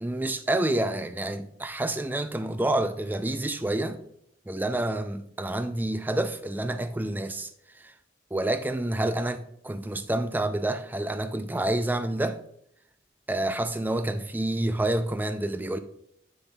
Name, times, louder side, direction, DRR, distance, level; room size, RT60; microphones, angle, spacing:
voice 1, 0.0-4.0 4.5-7.9 8.3-12.4 13.3-15.8, right 1 dB, 10° right, 0.3 m, -28 dB
7.2 x 6.9 x 2.2 m
head